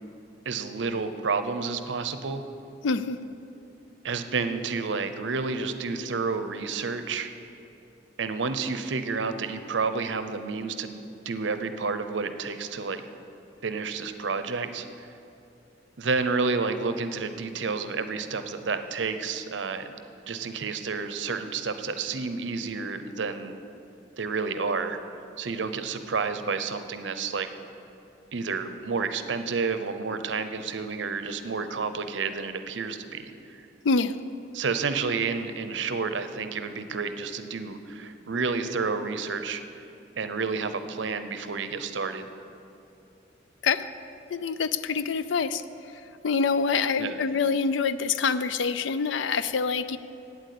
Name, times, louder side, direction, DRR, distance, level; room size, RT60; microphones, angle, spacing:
voice 1, 0.5-2.4 4.0-7.3 8.2-13.0 13.6-15.1 16.0-19.9 20.3-23.6 24.2-25.0 25.4-27.5 28.3-33.6 34.5-39.6 40.2-42.3 47.0-47.2, right 4 dB, 70° right, 10 dB, 0.6 m, -30 dB
voice 2, 2.8-3.2 33.8-34.1 43.6-43.9 44.3-45.6 46.2-50.0, left 5 dB, 75° left, 13 dB, 0.4 m, -25 dB
8.7 x 7.9 x 8.4 m, 2.7 s
head